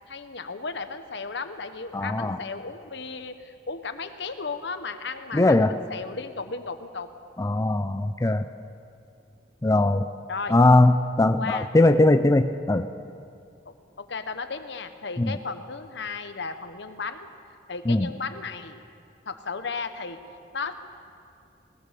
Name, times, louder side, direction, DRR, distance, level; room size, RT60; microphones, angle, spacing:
voice 1, 0.1-7.1 10.3-10.5 11.3-11.7 13.6-17.3 17.7-18.8 19.3-20.2 20.5-20.7, left 4 dB, 70° left, 9 dB, 1.2 m, -35 dB
voice 2, 1.9-2.4 5.3-5.8 7.4-8.4 9.6-10.1 10.5-12.9 15.2-15.3 17.9-18.1, left 2 dB, 20° left, 9 dB, 0.5 m, -20 dB
21.0 x 18.5 x 6.8 m, 2.5 s
head